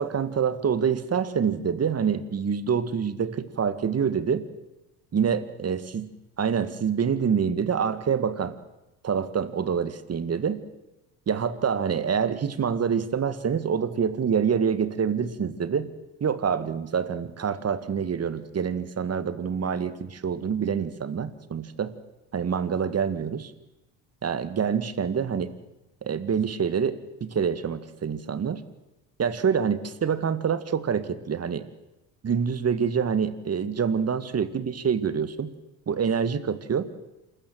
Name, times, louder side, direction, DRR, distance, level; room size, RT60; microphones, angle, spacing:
voice 1, 0.0-4.5 5.1-6.1 6.4-8.6 9.0-10.6 11.3-15.9 16.2-21.9 22.3-23.5 24.2-25.5 26.0-28.6 29.2-31.7 32.2-35.5 35.9-36.9, right 7 dB, 35° right, 13 dB, 2.0 m, -26 dB
27.5 x 14.5 x 7.7 m, 0.96 s
hypercardioid pair, 65°, 41 cm